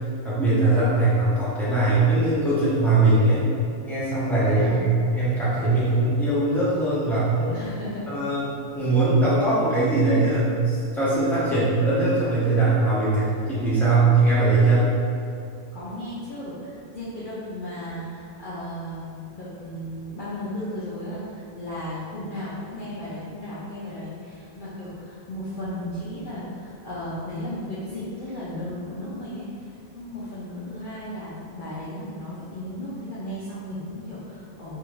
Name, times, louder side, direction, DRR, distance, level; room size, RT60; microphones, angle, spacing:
voice 1, 0.2-3.4 3.8-7.6 8.1-15.0, right 2 dB, 5° left, -11 dB, 0.3 m, -21 dB
voice 2, 4.5-5.0 7.5-8.1 15.7-34.8, left 1 dB, 65° left, -11 dB, 0.5 m, -35 dB
2.6 x 2.4 x 3.0 m, 2.4 s
omnidirectional pair, 1.5 m